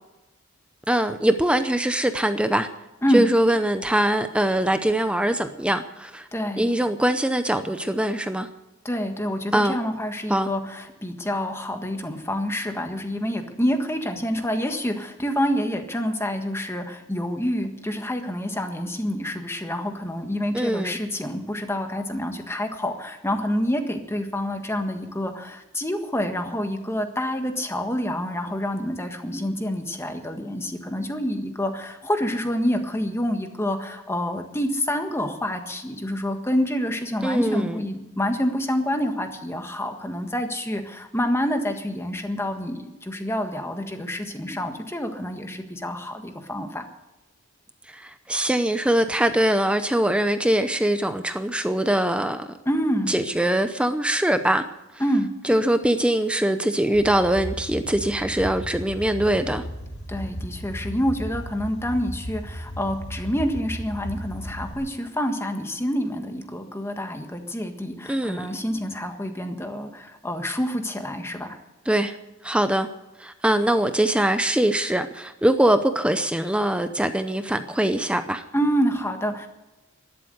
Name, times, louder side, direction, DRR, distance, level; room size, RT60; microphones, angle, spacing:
voice 1, 0.9-2.7 3.1-6.3 6.6-8.5 9.5-9.8 10.3-10.5 20.5-21.0 37.2-37.8 47.9-52.5 53.1-54.6 55.4-59.6 68.1-68.5 71.9-72.1 72.4-72.9 73.2-78.4, right 1 dB, 5° right, 0.6 m, -22 dB
voice 2, 6.3-6.6 8.8-46.8 52.6-53.2 55.0-55.3 60.1-71.6 78.5-79.5, equal, 10° left, 1.6 m, -27 dB
sound 1, 56.9-64.7, equal, 55° left, 3.1 m, -35 dB
12.5 x 11.5 x 7.9 m
head